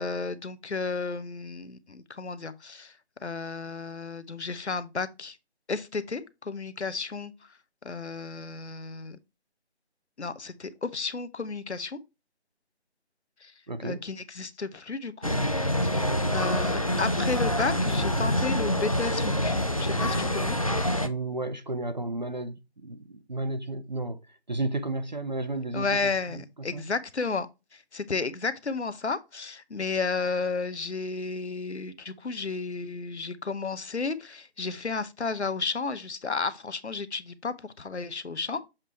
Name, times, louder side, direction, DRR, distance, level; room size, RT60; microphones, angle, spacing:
voice 1, 0.0-2.9 3.2-5.4 5.7-7.3 7.8-9.2 10.2-12.0 13.4-13.5 13.8-15.3 15.8-20.6 25.7-38.6, left 4 dB, 85° left, 1.0 m, -32 dB
voice 2, 13.7-14.0 21.0-24.2 24.5-26.9, right 2 dB, 45° right, 0.5 m, -33 dB
sound 1, 15.2-21.1, equal, 35° left, 0.4 m, -26 dB
7.4 x 3.3 x 4.3 m
figure-of-eight pair, 160°, 33 cm